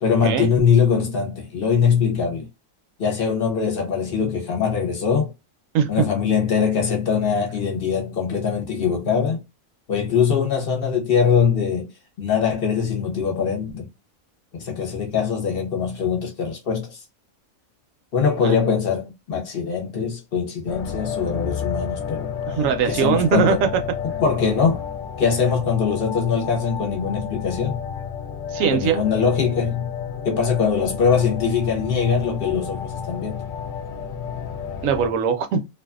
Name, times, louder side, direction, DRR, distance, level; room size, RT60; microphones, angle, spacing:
voice 1, 0.0-2.5 3.0-5.3 5.9-9.4 9.9-11.9 12.2-13.9 14.5-17.0 18.1-22.3 22.9-23.6 24.2-24.8 25.2-27.8 28.7-29.9 30.2-33.5, left 6 dB, 50° left, 0.9 m, -22 dB
voice 2, 5.7-6.1 18.4-18.6 22.5-23.7 28.5-29.0 34.8-35.7, right 7 dB, 75° right, 0.9 m, -21 dB
sound 1, 20.7-35.1, left 7 dB, 80° left, 0.4 m, -31 dB
2.6 x 2.3 x 2.3 m
omnidirectional pair, 1.5 m